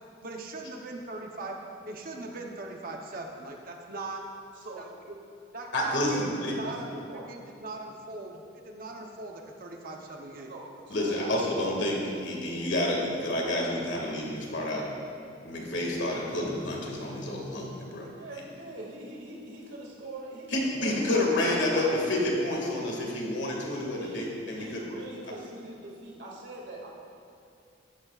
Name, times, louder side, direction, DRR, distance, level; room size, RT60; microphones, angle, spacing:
voice 1, 0.2-1.6 1.9-4.3 4.8-5.2 5.5-10.5, right 2 dB, 45° right, 2 dB, 0.8 m, -40 dB
voice 2, 5.7-6.2 6.4-6.5 10.9-14.9 15.4-18.1 20.5-24.8, left 1 dB, 65° left, -2 dB, 2.1 m, -29 dB
voice 3, 6.6-7.3 10.5-11.3 18.1-22.1 24.0-24.2 24.5-26.9, right 2 dB, 65° right, -3 dB, 2.2 m, -42 dB
14.0 x 12.0 x 2.4 m, 2.5 s
head